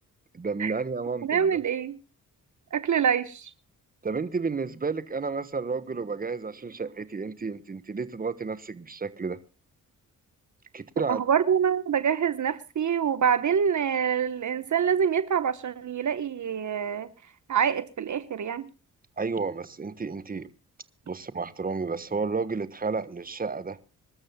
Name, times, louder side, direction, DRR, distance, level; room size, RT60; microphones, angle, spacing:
voice 1, 0.3-1.5 4.0-9.4 10.7-11.2 19.2-20.5 21.1-23.8, right 4 dB, 25° right, 1.3 m, -31 dB
voice 2, 1.2-2.0 2.7-3.5 11.1-17.1 17.5-18.7, right 7 dB, 55° right, 1.1 m, -25 dB
25.5 x 13.0 x 2.2 m
supercardioid pair, 60°, 35 cm